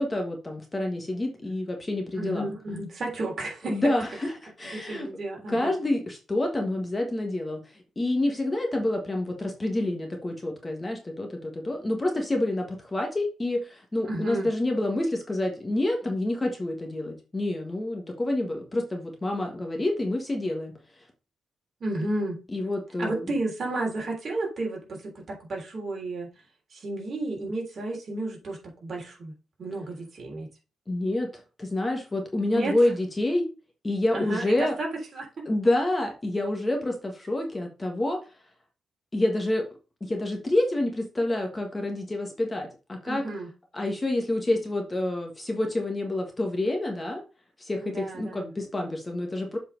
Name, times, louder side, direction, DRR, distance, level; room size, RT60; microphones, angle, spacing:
voice 1, 0.0-2.5 3.7-5.1 5.5-7.6 8.0-20.7 22.5-23.2 30.9-31.3 31.6-33.5 33.8-34.7 35.4-38.2 39.1-39.6 40.0-43.2 43.7-47.2 47.6-49.6, left 1 dB, 15° left, 3 dB, 1.4 m, -28 dB
voice 2, 2.1-3.8 4.6-5.7 14.0-14.5 21.8-22.4 23.0-26.3 26.7-29.3 29.6-30.5 32.5-32.7 34.1-35.3 43.0-43.5 47.8-48.5, right 2 dB, 40° right, -1 dB, 3.4 m, -32 dB
7.4 x 4.3 x 5.2 m, 0.32 s
wide cardioid pair, 145°, 0 cm